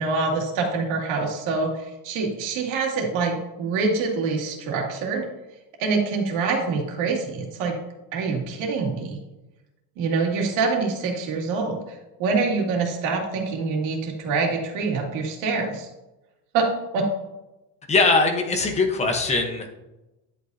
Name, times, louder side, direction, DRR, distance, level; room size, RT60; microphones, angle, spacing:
voice 1, 0.0-5.2 5.8-7.7 8.1-9.2 10.0-15.9 16.5-16.7 16.9-17.0, right 4 dB, 90° right, 0 dB, 2.5 m, -25 dB
voice 2, 17.9-19.7, left 3 dB, 15° left, 2 dB, 1.0 m, -21 dB
11.0 x 8.2 x 2.7 m, 0.99 s
cardioid pair, 180°, 43 cm